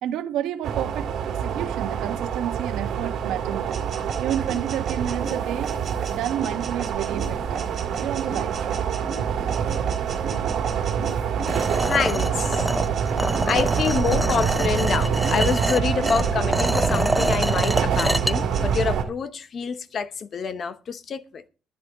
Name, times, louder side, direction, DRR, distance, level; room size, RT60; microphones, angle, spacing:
voice 1, 0.0-3.7 4.2-5.8 6.1-7.7 8.0-8.8, right 11 dB, 75° right, 1.4 m, -30 dB
sound 1, 0.6-19.0, right 7 dB, 55° right, 2.4 m, -26 dB
sound 2, 3.7-13.1 13.3-15.0 15.2-16.9 17.2-18.8, right 5 dB, 30° right, 4.1 m, -37 dB
sound 3, 11.5-18.3, equal, ahead, 0.5 m, -27 dB
voice 2, 11.9-12.7 13.5-21.4, left 6 dB, 35° left, 0.8 m, -27 dB
14.0 x 10.5 x 3.8 m
cardioid pair, 165°, 0 cm